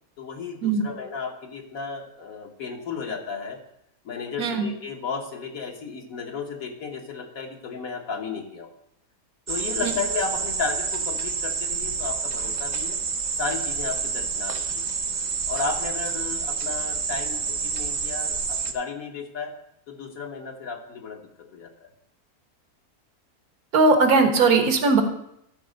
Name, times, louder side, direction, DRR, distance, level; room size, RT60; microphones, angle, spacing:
voice 1, 0.2-3.6 4.0-8.7 9.5-13.0 13.3-14.9 15.5-19.5 19.9-21.2 21.5-21.7, left 5 dB, 70° left, 2 dB, 1.6 m, -33 dB
voice 2, 4.4-4.7 9.8-9.9 23.7-25.0, right 4 dB, 80° right, 5 dB, 1.6 m, -19 dB
sound 1, 9.5-18.7, right 5 dB, 60° right, 0.4 m, -28 dB
12.5 x 4.2 x 5.1 m, 0.77 s
omnidirectional pair, 1.6 m